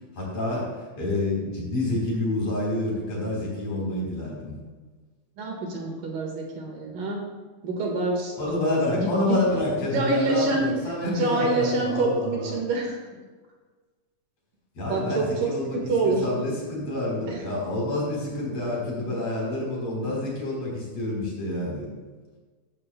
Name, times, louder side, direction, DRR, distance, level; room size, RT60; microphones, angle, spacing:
voice 1, 0.1-0.6 1.0-4.5 8.4-12.6 14.7-15.8 16.0-21.9, left 2 dB, 40° left, -4 dB, 4.6 m, -28 dB
voice 2, 5.4-7.2 7.6-9.4 9.9-10.7 11.1-13.0 14.9-16.2 17.3-17.4, right 2 dB, 60° right, 0 dB, 2.9 m, -26 dB
14.5 x 13.0 x 2.2 m, 1.4 s
omnidirectional pair, 4.8 m